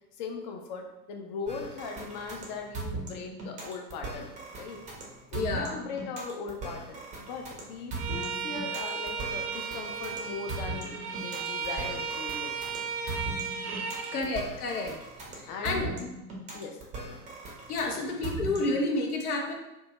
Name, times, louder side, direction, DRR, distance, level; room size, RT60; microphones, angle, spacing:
voice 1, 0.2-4.8 5.3-12.6 14.1-14.3 15.5-16.1 16.5-16.8 17.9-18.1, left 4 dB, 35° left, 3 dB, 0.4 m, -39 dB
sound 1, 1.5-18.9, right 3 dB, 15° right, 0.5 m, -39 dB
voice 2, 5.3-5.7 14.1-15.0 15.4-15.9 17.7-19.5, left 2 dB, 75° left, 1 dB, 0.7 m, -30 dB
Bowed string instrument, 8.0-14.2, right 6 dB, 80° right, 0.5 m, -35 dB
2.6 x 2.2 x 2.9 m, 0.96 s
figure-of-eight pair, 90°, 45 cm